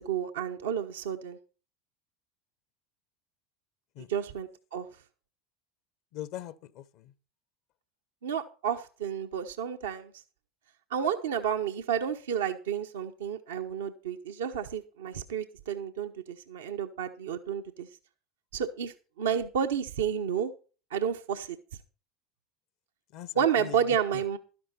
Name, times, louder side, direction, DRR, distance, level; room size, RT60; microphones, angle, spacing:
voice 1, 0.0-1.4 4.1-4.9 8.2-10.1 10.9-17.9 18.5-20.5 20.9-21.6 23.4-24.4, right 8 dB, 75° right, 0.9 m, -31 dB
voice 2, 6.1-7.1 23.1-23.8 24.1-24.4, left 13 dB, 55° left, 0.8 m, -41 dB
12.5 x 11.0 x 4.2 m
figure-of-eight pair, 75°, 0 cm